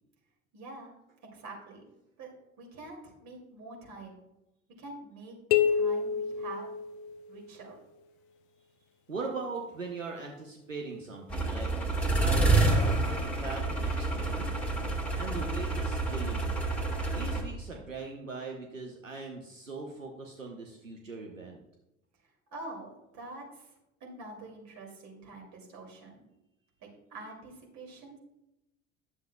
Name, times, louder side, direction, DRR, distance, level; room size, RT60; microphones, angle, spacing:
voice 1, 0.5-0.9 1.2-1.8 2.2-2.3 2.6-4.2 4.8-6.7 7.3-7.8 22.5-23.7 24.0-26.3 26.8-28.2, right 2 dB, 45° right, 0 dB, 2.5 m, -46 dB
sound 1, 5.5-7.5, left 8 dB, 60° left, 0.5 m, -28 dB
voice 2, 9.1-11.7 12.2-14.5 15.1-16.6 17.1-21.6, right 3 dB, 90° right, 1 dB, 0.7 m, -40 dB
sound 2, 11.3-17.4, right 2 dB, 5° left, 1.7 m, -28 dB
10.5 x 7.1 x 2.2 m, 0.91 s
figure-of-eight pair, 60°, 37 cm